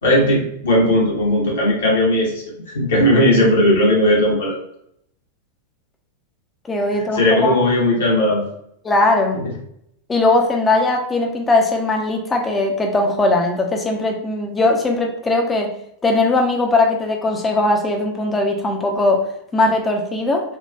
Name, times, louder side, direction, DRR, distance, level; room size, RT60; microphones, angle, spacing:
voice 1, 0.0-4.6 6.9-8.4 9.3-9.4, left 1 dB, 65° left, -4 dB, 1.2 m, -17 dB
voice 2, 6.7-7.6 8.8-9.4 10.1-15.7 16.0-19.2 19.5-20.4, left 2 dB, 15° left, 2 dB, 0.7 m, -19 dB
4.4 x 2.3 x 2.3 m, 0.71 s
figure-of-eight pair, 90°, 0 cm